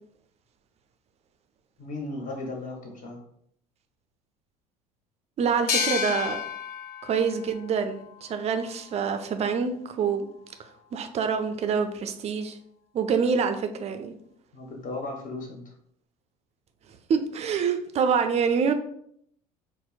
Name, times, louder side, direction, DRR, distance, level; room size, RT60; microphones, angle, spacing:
voice 1, 1.8-3.2 14.5-15.7, left 2 dB, 40° left, 0 dB, 1.0 m, -36 dB
voice 2, 5.4-6.4 7.0-10.3 10.9-12.6 12.9-14.2 16.9-18.7, right 6 dB, 35° right, 8 dB, 0.4 m, -26 dB
sound 1, 5.7-9.1, left 7 dB, 70° left, 0.4 m, -32 dB
4.2 x 2.0 x 2.3 m, 0.68 s
figure-of-eight pair, 65°, 20 cm